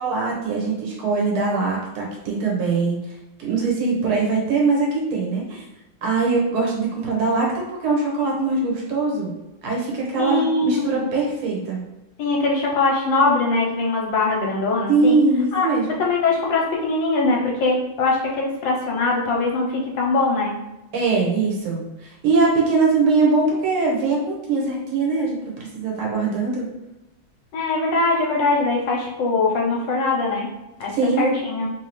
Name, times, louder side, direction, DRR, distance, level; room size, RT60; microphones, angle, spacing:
voice 1, 0.0-3.0 3.4-5.7 6.0-9.3 9.6-11.8 14.9-15.9 20.9-26.7 30.9-31.3, right 3 dB, 90° right, -2 dB, 1.8 m, -22 dB
voice 2, 10.2-11.0 12.2-15.2 15.5-20.5 27.5-30.5 30.8-31.7, left 3 dB, 70° left, -2 dB, 1.3 m, -22 dB
3.7 x 2.7 x 3.0 m, 0.99 s
omnidirectional pair, 2.2 m